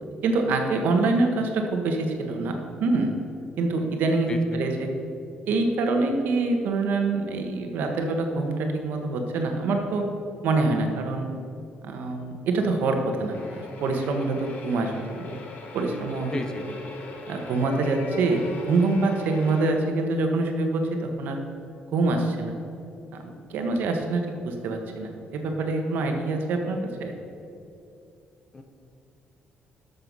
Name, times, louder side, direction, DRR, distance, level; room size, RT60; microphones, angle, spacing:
voice 1, 0.2-2.5 2.8-3.3 3.6-4.9 5.5-10.0 10.4-11.3 11.8-15.4 15.7-16.4 17.3-21.4 21.9-22.6 23.5-27.1, right 3 dB, 70° right, 4 dB, 1.3 m, -25 dB
voice 2, 4.3-4.6 16.3-16.7 28.5-28.6, left 3 dB, 20° left, 6 dB, 0.7 m, -32 dB
sound 1, 13.3-19.7, left 3 dB, 50° left, 1.3 m, -40 dB
12.5 x 6.8 x 5.5 m, 2.6 s
cardioid pair, 175°, 3 cm